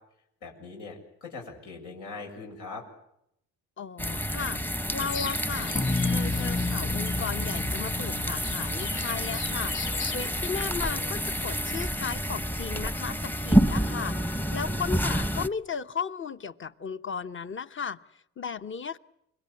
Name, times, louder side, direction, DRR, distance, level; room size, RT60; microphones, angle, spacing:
voice 1, 0.4-2.8, left 4 dB, 85° left, 1 dB, 7.4 m, -41 dB
voice 2, 3.8-4.6 4.9-5.7 6.0-9.7 10.1-18.0 18.4-19.0, left 6 dB, 40° left, 11 dB, 1.1 m, -35 dB
sound 1, 4.0-15.5, equal, 5° left, 0.9 m, -29 dB
sound 2, 5.0-11.6, left 8 dB, 65° left, 1.3 m, -41 dB
sound 3, 5.8-10.4, left 3 dB, 25° left, 1.6 m, -32 dB
25.5 x 21.5 x 8.6 m, 0.77 s
cardioid pair, 90°, 30 cm